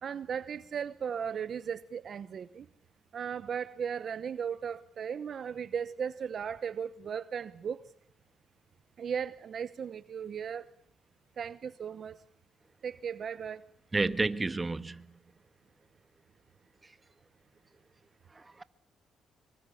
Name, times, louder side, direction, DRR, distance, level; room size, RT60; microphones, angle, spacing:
voice 1, 0.0-2.7 3.1-7.8 9.0-10.7 11.4-12.2 12.8-13.6, right 7 dB, 55° right, 0.9 m, -36 dB
voice 2, 13.9-15.2 18.3-18.6, right 3 dB, 25° right, 1.5 m, -31 dB
25.5 x 23.5 x 7.2 m
cardioid pair, 90°, 0 cm